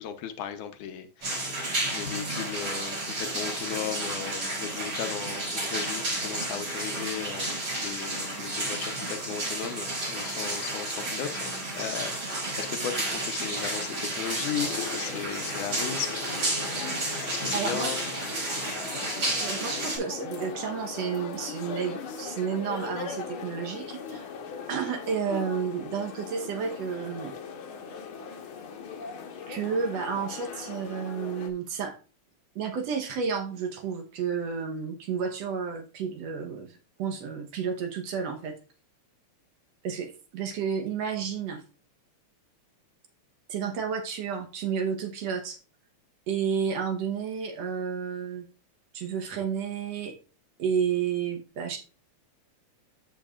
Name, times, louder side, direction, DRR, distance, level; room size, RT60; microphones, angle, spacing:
voice 1, 0.0-16.2 17.2-18.0, left 9 dB, 85° left, 2.4 m, -36 dB
sound 1, 1.2-20.0, right 2 dB, 50° right, 6.2 m, -32 dB
sound 2, 14.6-31.5, left 6 dB, 55° left, 1.7 m, -39 dB
voice 2, 17.5-17.9 19.1-24.3 24.7-27.4 29.5-32.0 32.6-38.5 39.8-41.6 43.5-45.6 46.3-48.5 48.9-50.1 50.6-51.8, right 6 dB, 65° right, 2.1 m, -31 dB
13.5 x 5.4 x 2.5 m
omnidirectional pair, 3.4 m